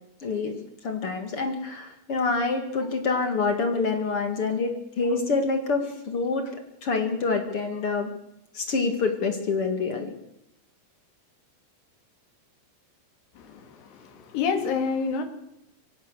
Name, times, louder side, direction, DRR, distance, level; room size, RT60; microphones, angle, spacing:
voice 1, 0.2-0.6 0.8-6.5 6.8-8.1 8.5-10.1, left 4 dB, 45° left, 6 dB, 2.1 m, -26 dB
voice 2, 13.4-15.2, left 5 dB, 70° left, 6 dB, 4.6 m, -28 dB
24.0 x 16.5 x 6.8 m, 0.82 s
omnidirectional pair, 5.0 m